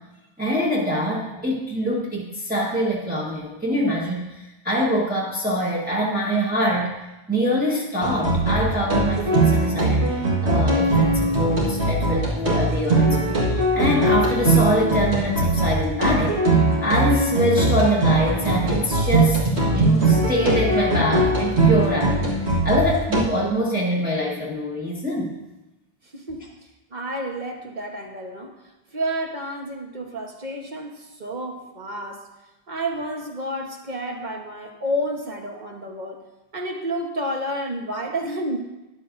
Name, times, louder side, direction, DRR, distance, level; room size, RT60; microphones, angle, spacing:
voice 1, 0.4-6.9 7.3-19.4 19.7-25.4, equal, 10° right, -6 dB, 1.5 m, -24 dB
sound 1, 8.0-23.2, right 2 dB, 75° right, 2.0 m, -20 dB
voice 2, 26.0-26.4 26.9-28.6 28.9-32.3 32.7-36.2 36.5-38.6, right 1 dB, 40° right, 1 dB, 1.3 m, -30 dB
13.0 x 10.5 x 2.6 m, 1.0 s
omnidirectional pair, 1.1 m